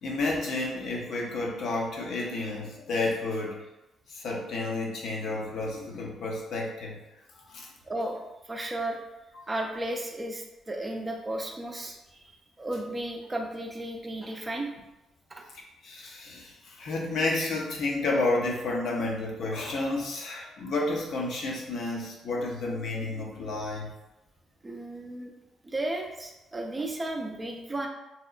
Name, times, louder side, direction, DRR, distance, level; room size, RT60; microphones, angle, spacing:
voice 1, 0.0-3.6 4.1-7.0 7.4-7.7 9.3-9.4 15.8-23.9, left 2 dB, 70° left, -1 dB, 0.6 m, -31 dB
voice 2, 7.9-8.2 8.5-9.0 9.5-12.0 12.3-14.7 15.3-15.4 24.6-25.3 25.6-27.9, right 1 dB, 20° right, 2 dB, 0.4 m, -34 dB
2.8 x 2.0 x 2.4 m, 0.97 s
cardioid pair, 90°, 0 cm